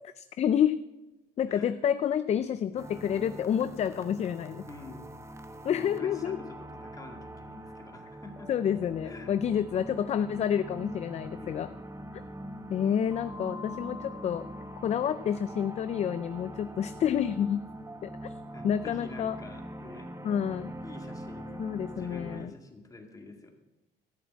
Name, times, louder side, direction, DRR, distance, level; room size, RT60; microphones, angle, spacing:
voice 1, 0.2-0.8 1.4-4.7 5.6-6.4 8.5-11.7 12.7-14.5 14.8-17.7 18.0-18.3 18.6-19.4 20.2-20.7 21.6-22.5, left 9 dB, 40° left, 12 dB, 0.4 m, -29 dB
sound 1, 2.8-22.5, equal, 15° right, 1.0 m, -43 dB
voice 2, 4.7-5.1 5.7-8.5 9.0-9.3 11.4-11.8 18.5-20.1 20.8-21.6 21.9-23.5, left 2 dB, 20° left, 3 dB, 2.1 m, -47 dB
13.0 x 6.8 x 7.5 m, 1.0 s
cardioid pair, 110°, 17 cm